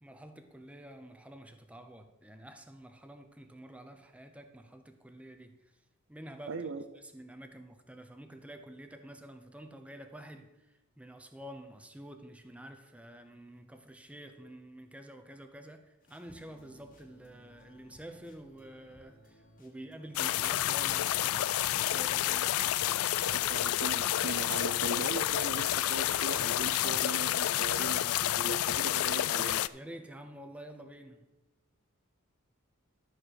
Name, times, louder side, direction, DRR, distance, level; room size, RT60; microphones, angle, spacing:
voice 1, 0.0-5.6 6.1-6.7 6.9-23.1 29.7-31.3, right 1 dB, 5° right, 0.7 m, -49 dB
voice 2, 6.5-6.8 23.2-29.6, right 4 dB, 60° right, 0.6 m, -39 dB
sound 1, 16.0-28.6, equal, 40° left, 2.1 m, -60 dB
sound 2, 20.1-29.7, left 13 dB, 75° left, 0.3 m, -29 dB
12.5 x 4.7 x 6.5 m
head